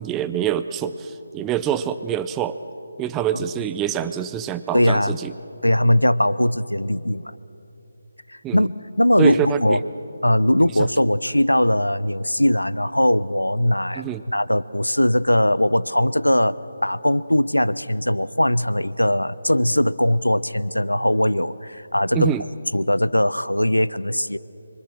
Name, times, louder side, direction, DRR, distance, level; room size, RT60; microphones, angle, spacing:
voice 1, 0.0-2.6 3.0-5.3 8.4-8.7 9.2-9.8 10.8-10.9 13.9-14.2 22.1-22.4, right 10 dB, 10° right, 11 dB, 0.5 m, -25 dB
voice 2, 4.7-5.1 5.6-7.2 8.3-9.8 10.2-16.6 16.8-22.3 22.7-24.4, left 1 dB, 85° left, 18 dB, 0.7 m, -20 dB
26.0 x 24.5 x 6.2 m, 2.9 s
figure-of-eight pair, 155°, 0 cm